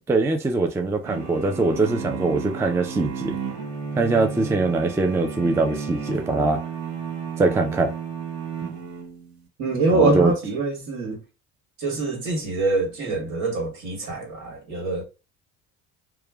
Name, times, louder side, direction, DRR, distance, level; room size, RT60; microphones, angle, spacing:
voice 1, 0.1-3.4 4.0-6.6 7.4-7.9 8.6-8.7 9.9-10.3, right 3 dB, 10° right, 0.3 m, -22 dB
sound 1, 1.0-9.4, right 6 dB, 85° right, 0.8 m, -33 dB
voice 2, 9.6-11.2 11.8-15.0, right 3 dB, 65° right, 1.5 m, -24 dB
3.0 x 2.2 x 2.2 m
supercardioid pair, 90°, 31 cm